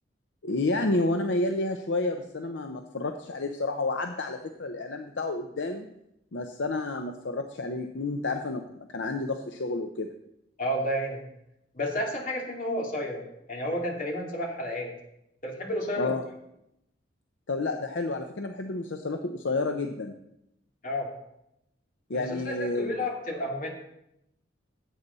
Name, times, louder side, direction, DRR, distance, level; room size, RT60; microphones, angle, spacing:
voice 1, 0.4-5.9 6.3-10.1 16.0-16.2 17.5-20.1 22.1-23.1, left 2 dB, 70° left, 6 dB, 0.7 m, -30 dB
voice 2, 10.6-11.2 11.7-13.2 13.5-14.9 15.4-16.1 20.8-21.1 22.1-23.7, equal, 45° left, -1 dB, 2.7 m, -31 dB
16.5 x 8.4 x 4.1 m, 0.82 s
head